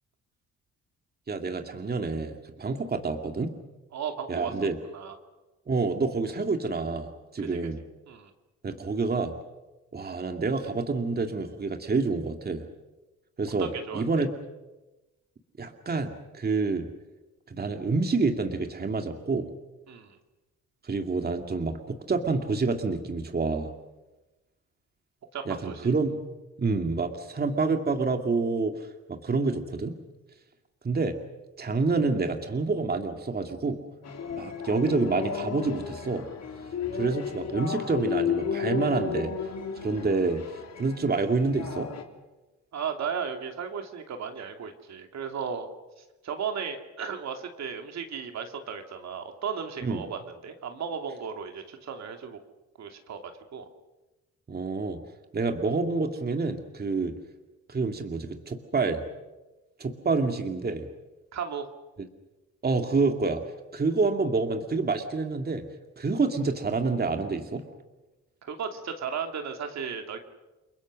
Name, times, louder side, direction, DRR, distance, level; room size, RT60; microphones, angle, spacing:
voice 1, 1.3-3.5 4.3-4.8 5.7-7.8 8.6-9.3 9.9-12.6 13.4-14.3 15.6-16.9 17.5-19.5 20.8-23.7 25.5-26.2 26.6-29.9 30.8-31.2 31.6-33.8 34.3-36.2 36.9-39.3 39.8-40.4 40.8-41.9 49.8-50.0 54.5-55.0 55.3-57.1 57.7-59.0 59.8-60.9 62.6-63.4 63.7-65.6 66.0-67.6, right 4 dB, 30° right, 5 dB, 2.4 m, -28 dB
voice 2, 3.9-4.5 4.9-5.2 7.4-7.6 8.1-8.3 13.6-14.2 19.9-20.2 25.3-25.8 42.7-45.7 46.2-52.4 52.8-53.7 61.3-61.7 68.4-70.2, right 6 dB, 60° right, 5 dB, 2.8 m, -35 dB
sound 1, 34.0-42.0, left 7 dB, 55° left, 3.2 m, -33 dB
29.5 x 22.5 x 6.4 m, 1.1 s
cardioid pair, 90°, 30 cm